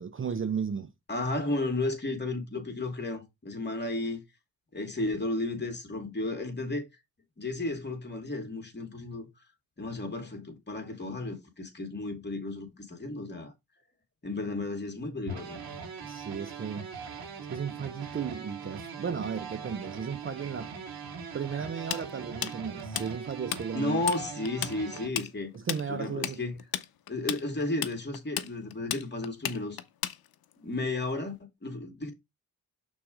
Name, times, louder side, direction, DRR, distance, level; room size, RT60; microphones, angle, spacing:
voice 1, 0.0-0.9 16.0-16.9 17.5-20.7 21.3-24.0 25.5-26.4, right 7 dB, 35° right, 0.6 m, -35 dB
voice 2, 1.1-4.2 4.7-6.9 7.4-9.3 9.8-13.5 14.2-15.6 23.7-25.5 25.9-26.6 27.1-29.8 30.6-32.1, left 2 dB, 30° left, 2.4 m, -33 dB
sound 1, 15.3-25.1, right 5 dB, 85° right, 2.3 m, -41 dB
Tools, 21.9-23.6 23.9-24.2 24.5-30.5, left 12 dB, 80° left, 0.7 m, -33 dB
5.9 x 3.9 x 4.9 m
cardioid pair, 65°, 36 cm